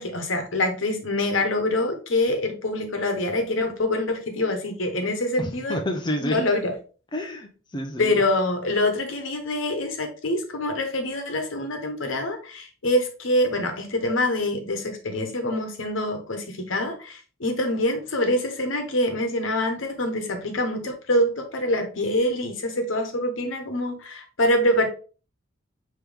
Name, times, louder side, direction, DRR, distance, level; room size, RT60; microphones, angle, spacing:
voice 1, 0.0-5.8 6.2-6.7 8.0-24.9, left 1 dB, 70° left, 4 dB, 1.1 m, -25 dB
voice 2, 5.4-6.4 7.1-8.2, left 1 dB, 20° left, 3 dB, 0.6 m, -29 dB
5.2 x 3.0 x 3.4 m, 0.37 s
head